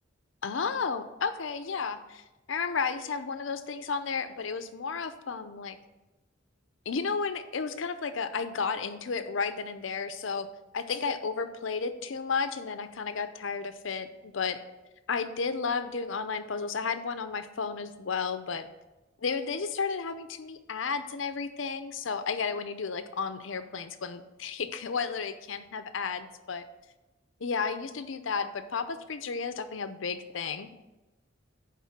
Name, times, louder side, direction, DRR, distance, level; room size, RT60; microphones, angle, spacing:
voice 1, 0.4-5.8 6.9-10.5 10.7-14.6 15.1-18.7 19.2-26.6 27.4-30.7, left 5 dB, 75° left, 10 dB, 0.6 m, -33 dB
9.5 x 3.7 x 5.8 m, 1.0 s
head